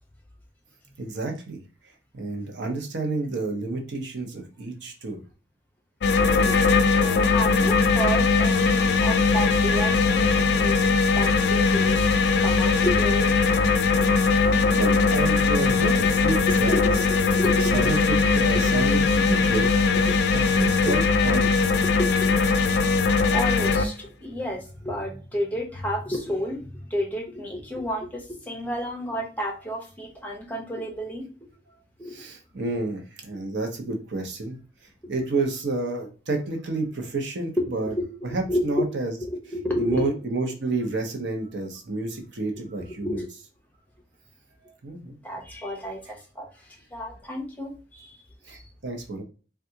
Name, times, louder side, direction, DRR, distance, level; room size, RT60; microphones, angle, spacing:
voice 1, 1.0-1.6 2.1-5.2 14.4-16.8 17.7-19.7 20.3-21.7 32.1-34.6 35.1-37.9 38.2-39.1 39.8-43.2 44.6-45.1 48.5-49.2, right 2 dB, 75° right, 3 dB, 0.7 m, -30 dB
sound 1, 6.0-23.8, left 4 dB, 60° left, 0.4 m, -20 dB
voice 2, 6.5-12.0 12.4-13.3 14.0-14.1 16.5-17.9 20.1-20.2 20.9-21.0 22.0-22.3 23.3-31.2 32.0-32.2 37.6-38.0 38.3-38.8 39.5-40.0 43.0-43.3 45.2-48.6, equal, 10° left, 0 dB, 0.7 m, -31 dB
3.5 x 2.3 x 2.7 m, 0.36 s
head